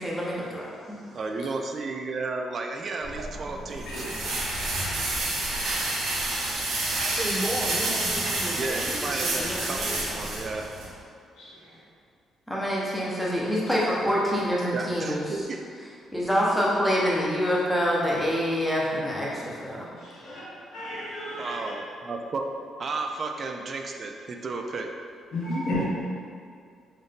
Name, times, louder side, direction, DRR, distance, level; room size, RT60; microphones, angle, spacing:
voice 1, 0.0-1.0 12.5-15.2 16.1-19.9, equal, 5° left, -6 dB, 0.9 m, -26 dB
voice 2, 1.1-4.1 8.5-10.8 14.7-15.6 21.3-22.5 22.8-24.9, right 3 dB, 45° right, 4 dB, 0.3 m, -33 dB
sound 1, 3.0-10.9, right 2 dB, 85° right, 0.8 m, -29 dB
voice 3, 5.4-6.2 11.4-11.6 20.0-20.4 20.7-21.6 25.3-25.8, left 1 dB, 75° left, -8 dB, 1.2 m, -33 dB
voice 4, 6.9-10.0, right 1 dB, 30° right, -6 dB, 1.1 m, -33 dB
3.8 x 2.6 x 3.5 m, 2.2 s
cardioid pair, 90°, 0 cm